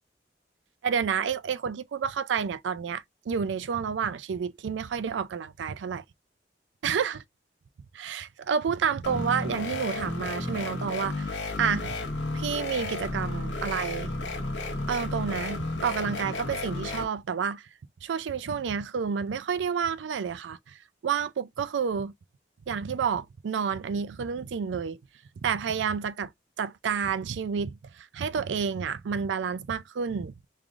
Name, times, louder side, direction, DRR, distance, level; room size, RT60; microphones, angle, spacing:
voice 1, 0.8-6.0 6.8-7.2 7.9-11.9 12.3-14.1 14.9-17.7 18.0-22.1 22.7-25.0 25.4-26.3 26.6-30.3, right 6 dB, 85° right, 0.4 m, -30 dB
sound 1, 9.0-17.0, left 2 dB, 85° left, 1.0 m, -33 dB
3.6 x 3.3 x 2.4 m
head